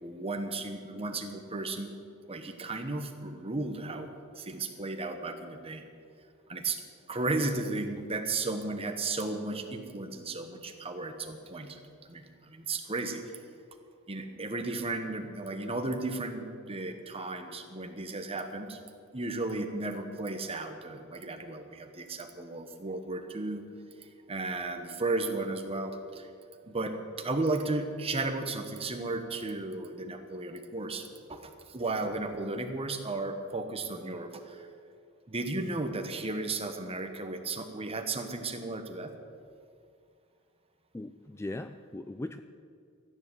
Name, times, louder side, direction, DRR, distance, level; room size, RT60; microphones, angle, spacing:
voice 1, 0.0-1.9 2.3-5.8 6.5-6.8 7.1-13.4 14.1-18.8 19.1-23.6 24.0-26.3 26.7-34.7 35.3-39.1, right 2 dB, 25° right, 6 dB, 1.2 m, -34 dB
voice 2, 40.9-42.4, left 2 dB, 10° left, 9 dB, 0.3 m, -39 dB
14.5 x 9.8 x 7.8 m, 2.3 s
head